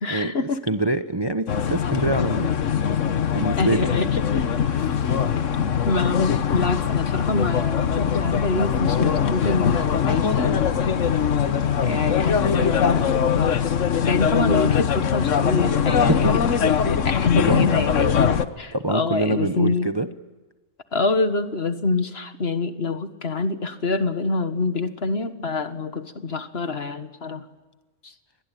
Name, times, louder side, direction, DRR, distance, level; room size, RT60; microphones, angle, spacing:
voice 1, 0.0-0.6 3.6-4.2 5.8-10.7 11.8-13.3 14.1-16.3 16.7-19.9 20.9-27.5 28.0-28.1, left 3 dB, 50° left, 9 dB, 1.7 m, -26 dB
voice 2, 0.7-2.5 3.3-3.9 4.7-5.2 16.0-16.3 17.4-17.7 18.7-20.1, right 2 dB, 25° right, 9 dB, 0.8 m, -25 dB
sound 1, 1.5-18.5, left 7 dB, 70° left, 1.4 m, -22 dB
29.5 x 22.0 x 9.2 m, 1.2 s
omnidirectional pair, 1.3 m